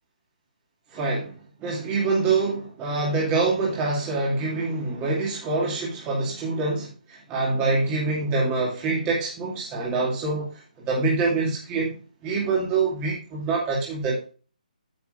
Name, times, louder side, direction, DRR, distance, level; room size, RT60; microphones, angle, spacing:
voice 1, 0.9-1.3 1.6-10.6 10.9-12.0 12.2-14.3, right 3 dB, 15° right, 2.4 m, -25 dB
9.6 x 8.3 x 2.5 m
figure-of-eight pair, 145°, 5 cm